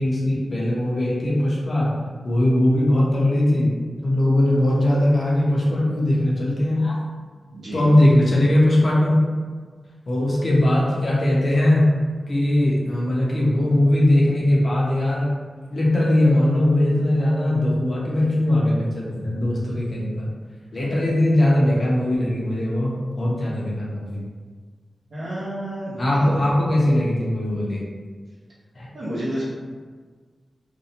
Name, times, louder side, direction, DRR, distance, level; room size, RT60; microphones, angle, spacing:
voice 1, 0.0-1.9 2.2-3.7 4.0-7.0 7.7-9.2 10.1-11.9 12.3-15.3 15.7-20.3 20.7-22.9 23.2-24.2 26.0-27.8 28.7-28.9, left 1 dB, 45° left, -4 dB, 0.6 m, -20 dB
voice 2, 7.5-7.8 20.9-21.0 25.1-26.3 28.9-29.4, right 1 dB, 70° right, -8 dB, 0.9 m, -30 dB
2.6 x 2.2 x 2.8 m, 1.5 s
wide cardioid pair, 135°, 0 cm